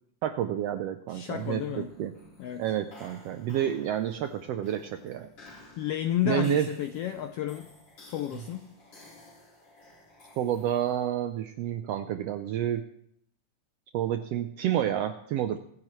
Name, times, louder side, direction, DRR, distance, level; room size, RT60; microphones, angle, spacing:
voice 1, 0.2-2.1 2.6-5.3 6.2-6.7 10.4-12.8 13.9-15.6, right 11 dB, 80° right, 8 dB, 1.4 m, -29 dB
voice 2, 1.1-1.9 2.4-2.6 5.8-7.7 8.1-8.7, left 11 dB, 85° left, 7 dB, 1.4 m, -31 dB
sound 1, 1.2-11.1, left 2 dB, 50° left, 3.9 m, -54 dB
24.5 x 9.7 x 3.1 m, 0.71 s
omnidirectional pair, 3.4 m